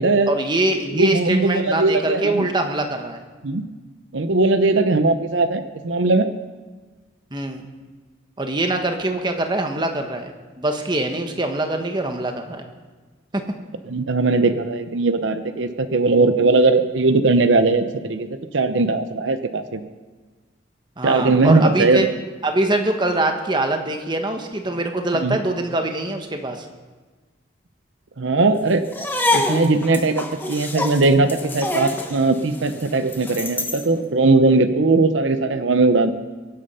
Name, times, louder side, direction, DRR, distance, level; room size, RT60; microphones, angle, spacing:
voice 1, 0.3-3.2 7.3-7.7 8.4-12.6 13.3-13.4 21.0-22.1 22.4-26.7, right 2 dB, 25° right, 5 dB, 1.3 m, -23 dB
voice 2, 0.9-2.5 3.4-3.7 4.1-6.3 13.9-19.9 21.0-22.1 25.2-25.4 28.2-28.9 29.3-36.1, right 3 dB, 75° right, 10 dB, 0.8 m, -19 dB
sound 1, 28.9-33.9, left 2 dB, 10° left, 1.1 m, -26 dB
23.5 x 8.9 x 5.6 m, 1.3 s
head